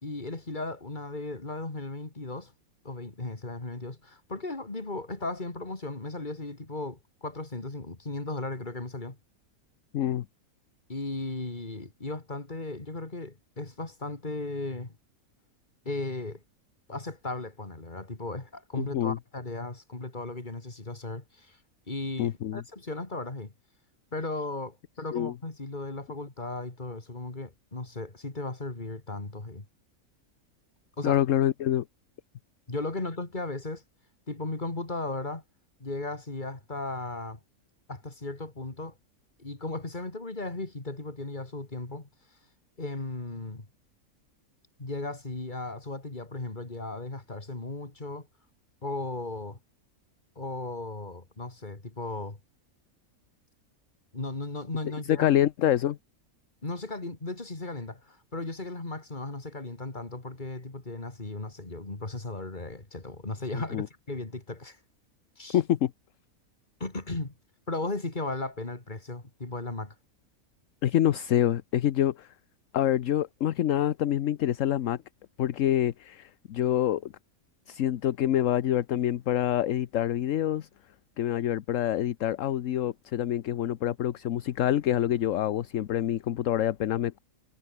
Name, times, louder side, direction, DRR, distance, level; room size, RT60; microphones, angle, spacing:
voice 1, 0.0-2.5 2.8-9.2 10.9-14.9 15.8-16.4 16.9-21.6 21.9-23.5 24.1-29.7 31.0-31.2 32.7-33.8 34.3-35.4 35.8-37.4 37.9-38.9 39.4-42.1 42.8-43.7 44.8-48.3 48.8-49.6 50.4-52.4 54.1-55.3 56.6-64.8 65.4-65.6 66.8-67.3 67.7-69.9, left 2 dB, 30° left, 3.2 m, -36 dB
voice 2, 9.9-10.2 18.8-19.2 22.2-22.6 25.1-25.3 31.0-31.8 55.1-56.0 63.7-63.9 65.5-65.9 70.8-72.3 72.7-75.0 75.4-77.1 77.7-80.7 81.2-87.2, left 11 dB, 65° left, 1.1 m, -26 dB
omnidirectional pair, 1.5 m